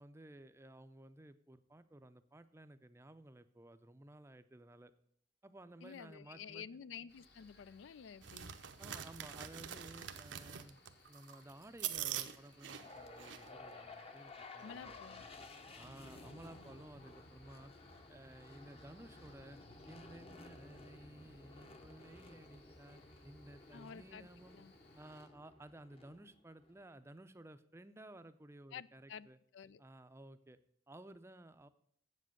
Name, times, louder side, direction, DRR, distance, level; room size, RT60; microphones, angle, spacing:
voice 1, 0.0-4.9 5.4-6.6 8.8-10.8 11.1-15.5 15.8-17.7 18.1-19.6 19.9-24.6 25.0-29.4 29.8-30.6 30.9-31.7, right 1 dB, 15° right, 11 dB, 0.5 m, -56 dB
voice 2, 5.8-8.6 14.6-15.2 23.7-24.3 24.5-24.7 28.7-29.3 29.5-29.8, left 7 dB, 80° left, 18 dB, 0.4 m, -51 dB
Cricket, 7.1-25.3, left 3 dB, 60° left, 1.6 m, -67 dB
sound 1, 8.2-13.5, right 10 dB, 75° right, 0.7 m, -44 dB
sound 2, 12.6-26.8, left 2 dB, 30° left, 0.8 m, -55 dB
7.7 x 7.5 x 7.7 m, 0.66 s
head